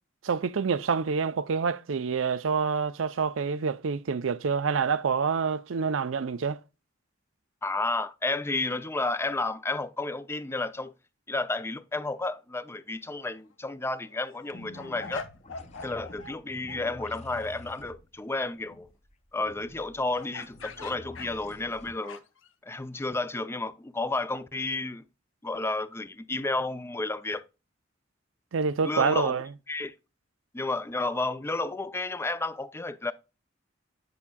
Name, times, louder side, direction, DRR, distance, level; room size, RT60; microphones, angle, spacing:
voice 1, 0.2-6.6 28.5-29.5, right 5 dB, 75° right, 0.5 m, -27 dB
voice 2, 7.6-10.9 11.3-15.2 15.8-18.9 19.3-22.2 22.6-25.0 25.4-27.4 28.8-29.4 29.7-29.9 30.5-33.1, left 2 dB, 15° left, 0.4 m, -31 dB
sound 1, 13.1-13.4 13.8-16.4 16.7-16.8 20.1-22.5, left 4 dB, 70° left, 0.9 m, -43 dB
sound 2, 14.5-21.9, left 1 dB, 35° left, 0.8 m, -48 dB
8.4 x 5.9 x 2.2 m
head